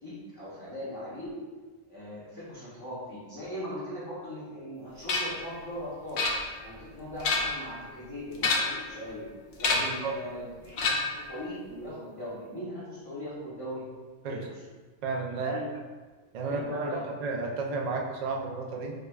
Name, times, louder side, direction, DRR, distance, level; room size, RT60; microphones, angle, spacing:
voice 1, 0.0-1.4 1.9-6.3 6.6-9.3 9.6-10.8 11.1-13.9 14.3-14.6 15.3-15.7 16.4-17.0, equal, 25° left, -11 dB, 0.6 m, -39 dB
sound 1, 5.1-5.4 6.2-6.8 7.1-7.7 8.4-8.9 9.6-10.0 10.8-11.3, left 3 dB, 65° left, 0.8 m, -28 dB
voice 2, 9.7-10.1 14.2-14.4 15.0-15.6 16.3-18.9, right 3 dB, 70° right, 0 dB, 0.4 m, -32 dB
4.6 x 2.2 x 2.2 m, 1.4 s
omnidirectional pair, 1.2 m